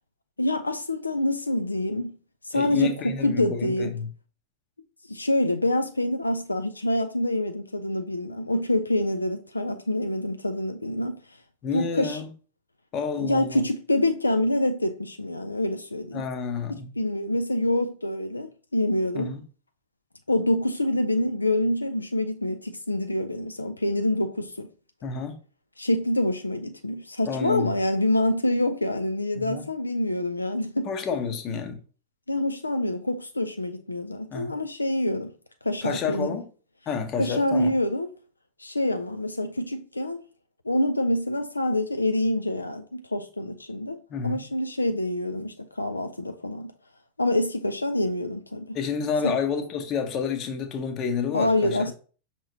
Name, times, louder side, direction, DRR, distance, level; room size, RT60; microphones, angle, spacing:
voice 1, 0.4-2.2 2.4-3.9 5.1-11.4 11.7-12.2 13.2-16.3 16.7-19.3 20.3-24.7 25.8-30.9 32.3-35.3 35.6-36.4 37.2-38.1 38.6-40.2 40.7-46.7 47.2-48.8 49.2-49.4 51.3-51.9, left 1 dB, 80° left, 0.3 m, -26 dB
voice 2, 2.5-4.1 11.6-12.3 12.9-13.6 16.1-16.9 19.1-19.4 25.0-25.4 27.3-27.7 29.4-29.6 30.8-31.8 34.3-34.5 35.8-36.5 36.9-37.7 44.1-44.4 48.7-51.9, left 6 dB, 35° left, 0.8 m, -29 dB
5.7 x 2.9 x 2.7 m
figure-of-eight pair, 90°, 0 cm